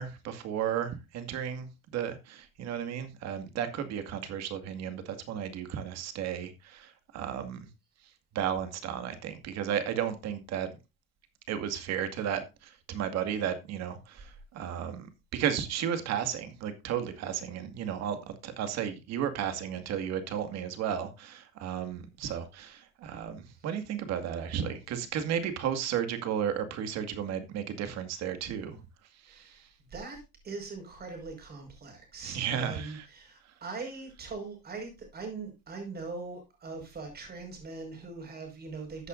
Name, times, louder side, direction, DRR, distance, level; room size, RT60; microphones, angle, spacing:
voice 1, 0.0-7.7 8.3-10.7 11.5-28.8 29.2-29.7 32.2-33.1, right 9 dB, 55° right, 2.2 m, -34 dB
voice 2, 29.3-39.1, right 4 dB, 30° right, 5.4 m, -41 dB
14.0 x 8.2 x 2.6 m
cardioid pair, 130°, 32 cm